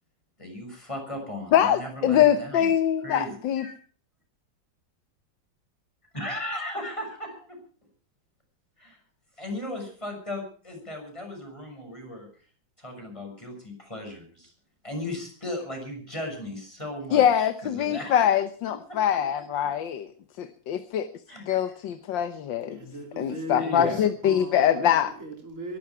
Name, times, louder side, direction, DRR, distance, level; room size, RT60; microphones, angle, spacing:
voice 1, 0.4-2.7 3.0-3.7 6.1-7.6 8.8-9.0 9.4-12.3 12.8-14.5 14.8-18.3 18.9-19.0 21.3-21.7 23.6-24.3, left 1 dB, 15° left, 3 dB, 6.7 m, -36 dB
voice 2, 1.5-3.6 17.1-20.1 20.4-21.1 21.5-22.8 23.2-25.1, left 10 dB, 80° left, 10 dB, 1.7 m, -23 dB
voice 3, 22.7-25.8, left 1 dB, 40° right, 2 dB, 3.5 m, -38 dB
23.0 x 13.0 x 4.7 m, 0.42 s
omnidirectional pair, 2.0 m